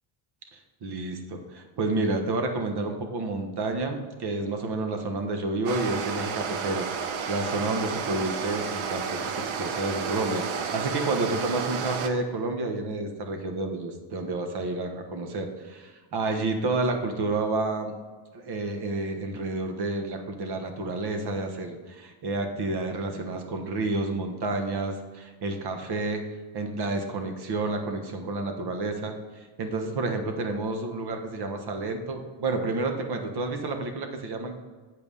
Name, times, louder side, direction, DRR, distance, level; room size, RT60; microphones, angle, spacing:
voice 1, 0.5-17.9 18.3-26.2 26.5-34.6, right 2 dB, 50° right, 5 dB, 1.4 m, -30 dB
sound 1, 5.7-12.1, right 6 dB, 70° right, 1.0 m, -31 dB
8.2 x 5.3 x 5.5 m, 1.4 s
cardioid pair, 120°, 50 cm